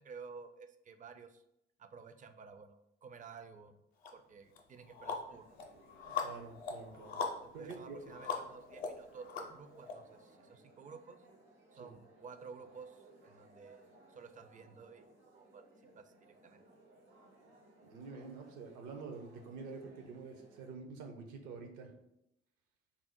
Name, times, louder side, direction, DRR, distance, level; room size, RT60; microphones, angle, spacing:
voice 1, 0.0-1.4 1.8-3.8 4.1-5.5 7.4-11.2 11.7-15.1 15.3-15.6 16.0-16.6, right 5 dB, 25° right, 9 dB, 0.4 m, -53 dB
sound 1, 4.0-4.1 4.6-9.9, left 5 dB, 80° left, 0.6 m, -41 dB
sound 2, 5.3-20.7, right 2 dB, 85° right, 1.1 m, -63 dB
voice 2, 6.0-7.2 7.5-8.0 11.8-11.9 17.8-21.9, right 4 dB, 65° right, 4 dB, 0.7 m, -47 dB
3.6 x 2.0 x 4.3 m, 0.81 s
figure-of-eight pair, 45°, 32 cm